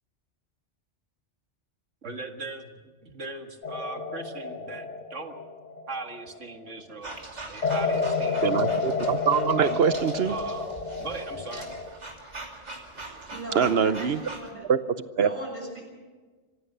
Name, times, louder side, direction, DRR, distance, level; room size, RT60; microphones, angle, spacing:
voice 1, 2.0-5.4 5.9-8.5 9.6-9.8 10.3-11.7, right 3 dB, 85° right, 5 dB, 2.2 m, -39 dB
sound 1, 3.6-6.6 7.6-11.9, left 4 dB, 85° left, 1.7 m, -30 dB
sound 2, 7.0-14.5, right 2 dB, 35° right, 2.8 m, -42 dB
voice 2, 8.4-10.3 13.1-13.2 13.5-14.2 14.7-14.8 15.2-15.3, right 7 dB, 60° right, 13 dB, 1.0 m, -23 dB
voice 3, 13.3-14.6 15.2-15.8, right 1 dB, 10° left, -2 dB, 6.4 m, -37 dB
26.0 x 16.0 x 6.8 m, 1.4 s
omnidirectional pair, 1.2 m